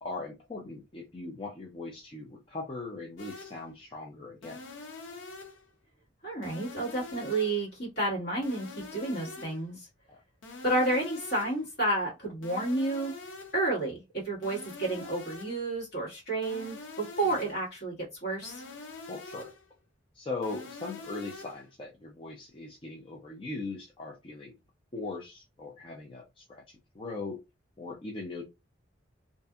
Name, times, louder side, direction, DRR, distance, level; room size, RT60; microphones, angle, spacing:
voice 1, 0.0-4.6 10.1-10.2 17.3-17.4 19.1-19.5 20.1-24.5 24.9-27.4 27.8-28.4, left 3 dB, 30° left, -1 dB, 0.4 m, -40 dB
sound 1, 3.2-3.7 4.4-5.7 6.4-7.7 8.4-9.7 10.4-11.7 12.4-13.7 14.4-15.7 16.4-17.7 18.4-19.7 20.4-21.7, left 3 dB, 85° left, 0.6 m, -45 dB
voice 2, 6.2-9.9 10.6-13.1 13.5-17.9 18.2-18.6, right 2 dB, 55° left, -4 dB, 1.6 m, -31 dB
2.6 x 2.5 x 2.3 m, 0.24 s
head